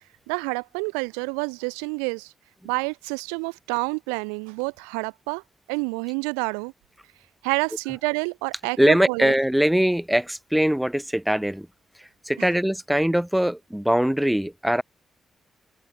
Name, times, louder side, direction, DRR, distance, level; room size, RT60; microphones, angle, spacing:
voice 1, 0.3-2.3 2.6-5.4 5.7-6.7 7.4-9.3 12.4-12.5, right 40 dB or more, 90° right, 2.0 m, -28 dB
voice 2, 8.8-11.7 12.3-14.8, equal, 5° right, 1.8 m, -22 dB
open air
hypercardioid pair, 40°, 0 cm